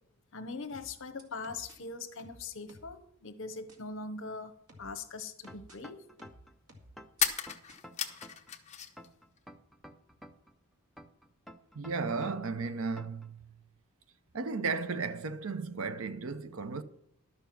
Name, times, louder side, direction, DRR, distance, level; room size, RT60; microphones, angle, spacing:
voice 1, 0.3-4.5 4.8-6.1, left 3 dB, 60° left, 1.0 m, -41 dB
sound 1, 0.7-1.8 2.2-3.0 3.7-3.8 4.7-5.8 6.2-7.2 7.7-7.8, equal, 90° right, 2.0 m, -55 dB
sound 2, 4.9-5.0 7.1-9.1 9.4-10.2, left 8 dB, 30° left, 0.8 m, -35 dB
sound 3, 5.5-6.5 7.0-8.5 9.0-10.5 11.0-12.5 13.0-13.3, equal, ahead, 0.5 m, -51 dB
voice 2, 11.7-13.6 14.3-16.8, right 4 dB, 65° right, 0.6 m, -34 dB
12.0 x 7.0 x 5.9 m
head